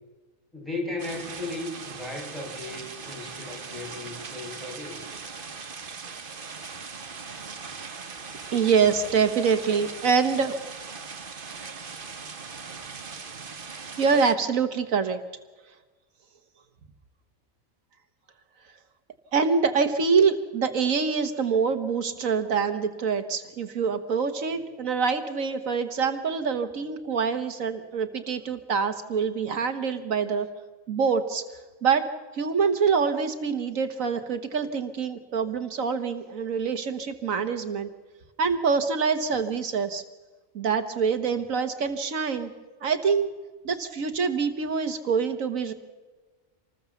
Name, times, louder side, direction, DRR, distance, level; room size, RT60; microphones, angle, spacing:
voice 1, 0.5-5.0, left 2 dB, ahead, -1 dB, 5.9 m, -36 dB
sound 1, 1.0-14.3, right 5 dB, 40° right, 1.3 m, -40 dB
voice 2, 8.5-10.6 11.5-11.8 14.0-15.2 19.3-30.5 30.9-31.4 31.8-32.1 32.3-37.9 38.4-40.0 40.5-42.5 42.8-43.3 43.6-45.7, right 5 dB, 80° right, 8 dB, 1.6 m, -25 dB
26.5 x 20.0 x 7.0 m, 1.3 s
omnidirectional pair, 1.4 m